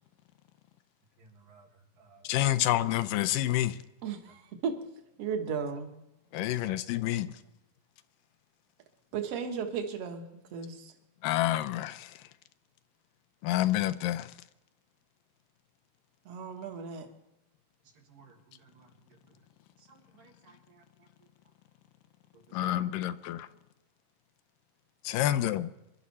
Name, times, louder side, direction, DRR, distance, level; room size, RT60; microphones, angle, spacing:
voice 1, 1.2-1.7 2.0-2.7 6.6-6.7 18.1-18.3 18.6-18.9 19.9-20.8 22.5-22.7 25.2-25.3, right 4 dB, 80° right, 3.5 m, -58 dB
voice 2, 2.3-3.8 6.3-7.3 11.2-12.1 13.4-14.3 22.5-23.5 25.0-25.7, left 13 dB, 85° left, 2.3 m, -28 dB
voice 3, 4.0-4.8 5.2-5.9 9.1-10.9 16.3-17.1, right 6 dB, 55° right, 2.1 m, -35 dB
25.0 x 11.5 x 4.2 m
omnidirectional pair, 3.8 m